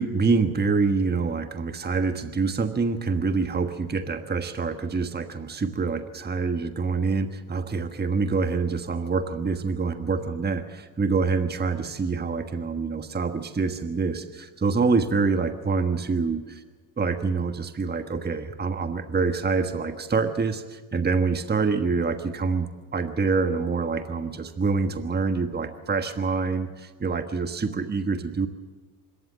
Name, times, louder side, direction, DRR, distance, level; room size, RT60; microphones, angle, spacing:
voice 1, 0.0-16.4 17.0-28.5, right 4 dB, 20° right, 8 dB, 1.4 m, -26 dB
25.5 x 13.5 x 7.6 m, 1.5 s
supercardioid pair, 80°, 45 cm